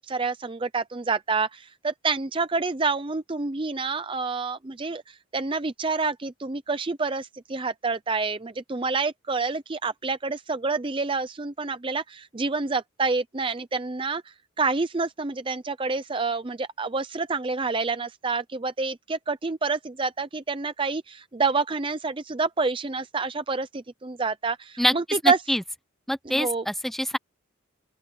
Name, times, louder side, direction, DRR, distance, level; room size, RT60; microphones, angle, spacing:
voice 1, 0.1-14.2 14.6-25.4 26.3-26.6, right 4 dB, 25° right, 0.5 m, -28 dB
voice 2, 25.2-25.6 26.1-27.2, equal, ahead, 0.8 m, -25 dB
open air
head